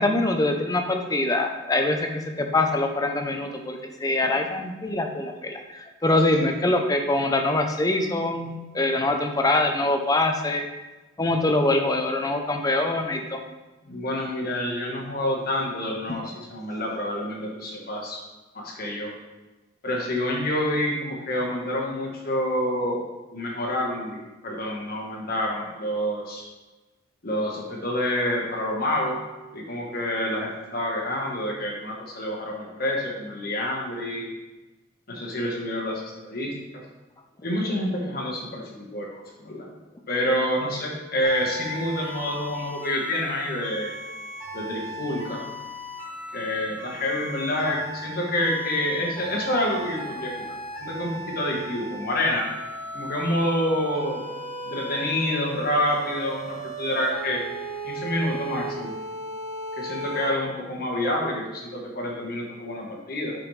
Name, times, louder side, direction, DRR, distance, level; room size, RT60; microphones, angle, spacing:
voice 1, 0.0-2.0 2.4-10.7 11.2-13.4, left 2 dB, 20° left, 4 dB, 0.5 m, -24 dB
voice 2, 13.9-18.2 18.5-19.1 19.8-23.0 23.3-24.2 24.4-26.4 27.2-29.2 29.5-34.3 35.1-36.5 37.4-39.1 39.4-39.6 40.1-43.9 44.5-45.4 46.3-50.5 50.8-52.5 52.9-54.2 54.6-57.4 57.8-58.9 59.8-63.3, left 1 dB, 50° left, -1 dB, 1.3 m, -27 dB
sound 1, 41.2-60.3, right 1 dB, 25° right, 2.2 m, -37 dB
6.8 x 5.1 x 3.2 m, 1.1 s
head